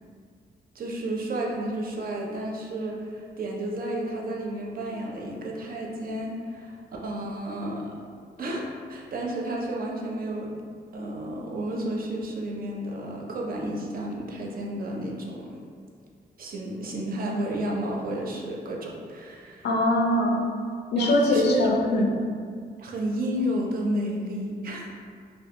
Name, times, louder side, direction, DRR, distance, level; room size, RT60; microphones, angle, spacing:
voice 1, 0.7-6.8 7.0-7.9 8.4-10.5 10.9-15.5 16.4-19.7 21.0-22.2 22.8-25.0, right 1 dB, 55° right, -1 dB, 0.4 m, -31 dB
voice 2, 19.6-20.4 20.9-22.1, left 1 dB, 70° left, 0 dB, 0.4 m, -22 dB
2.2 x 2.1 x 2.7 m, 2.1 s
cardioid pair, 85°, 18 cm